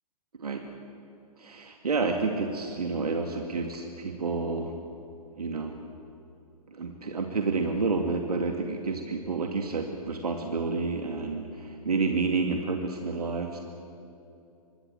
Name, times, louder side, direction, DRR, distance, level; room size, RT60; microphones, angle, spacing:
voice 1, 1.4-4.8 5.4-5.8 6.7-13.6, right 4 dB, 80° right, 4 dB, 2.3 m, -29 dB
26.0 x 21.0 x 7.6 m, 2.7 s
figure-of-eight pair, 120°, 20 cm